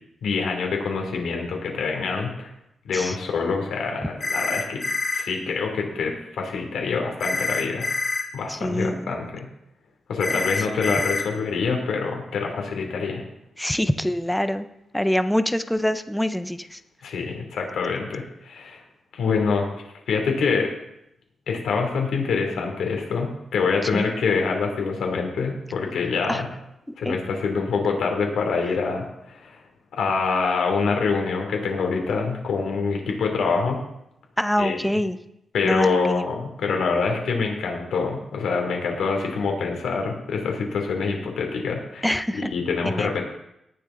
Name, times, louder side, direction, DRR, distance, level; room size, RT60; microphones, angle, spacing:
voice 1, 0.2-2.5 2.9-4.8 5.1-7.9 8.3-9.5 10.1-13.2 17.0-18.8 19.1-19.7 20.1-20.7 21.5-26.5 27.0-29.6 29.9-33.8 34.6-34.8 35.5-42.1 42.3-43.2, left 4 dB, 90° left, 1 dB, 2.6 m, -25 dB
sound 1, 4.2-5.2 7.2-8.2 10.2-11.2, left 3 dB, 35° left, 1.5 m, -26 dB
voice 2, 8.5-9.1 10.3-10.7 13.6-14.7 14.9-16.8 23.8-24.1 26.3-26.4 27.0-27.2 34.4-35.2 35.6-36.2 42.0-42.5 42.8-43.1, equal, 5° left, 10 dB, 0.5 m, -25 dB
18.0 x 6.9 x 3.8 m, 0.83 s
wide cardioid pair, 155°, 0 cm